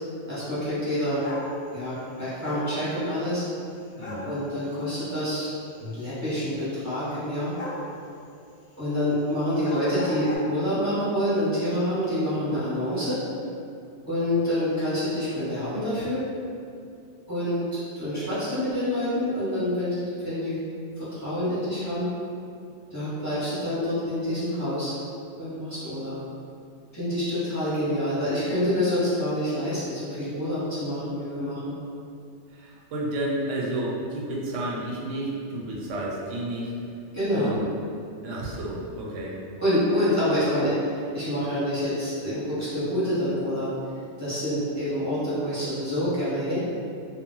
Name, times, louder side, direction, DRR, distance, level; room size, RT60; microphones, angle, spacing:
voice 1, 0.3-1.2 1.7-3.4 4.2-5.5 5.8-7.6 8.8-13.2 14.1-16.2 17.3-20.6 21.0-22.1 22.9-24.9 25.4-26.2 26.9-31.7 37.1-37.5 39.6-43.7 44.2-46.6, left 1 dB, 15° left, -12 dB, 0.7 m, -27 dB
sound 1, 1.2-1.5 2.4-2.7 4.0-4.3 7.6-7.9 9.5-10.4, left 2 dB, 75° left, 0.3 m, -35 dB
voice 2, 4.0-4.3 32.5-36.7 37.3-37.6 38.2-39.4, right 1 dB, 90° right, -4 dB, 0.9 m, -31 dB
2.1 x 2.0 x 3.7 m, 2.5 s
omnidirectional pair, 1.2 m